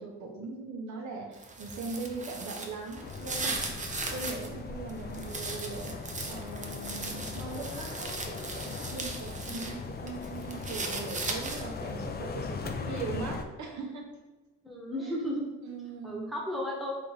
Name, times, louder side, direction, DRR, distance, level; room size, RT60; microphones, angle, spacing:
voice 1, 0.0-14.1 15.0-15.1 15.6-16.3, right 3 dB, 70° right, 0 dB, 0.9 m, -40 dB
sound 1, 1.3-4.5 4.9-9.7 10.1-11.8, right 3 dB, 25° right, 0.7 m, -38 dB
sound 2, 3.0-13.5, left 4 dB, 35° left, 0.4 m, -39 dB
voice 2, 14.6-15.5 16.0-16.9, equal, ahead, -3 dB, 1.1 m, -34 dB
3.3 x 3.2 x 3.9 m, 1.2 s
cardioid pair, 90°, 30 cm